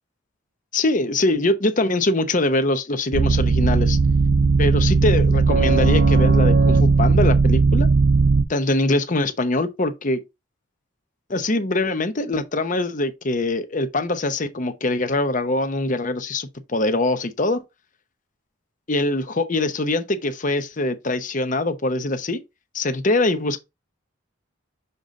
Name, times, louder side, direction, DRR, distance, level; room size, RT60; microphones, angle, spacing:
voice 1, 0.7-4.0 4.6-7.9 8.5-10.2 11.3-17.6 18.9-22.4 22.7-23.6, left 2 dB, 40° left, 0.9 m, -23 dB
sound 1, 3.1-8.4, right 4 dB, 60° right, 0.6 m, -17 dB
6.9 x 3.9 x 4.1 m
head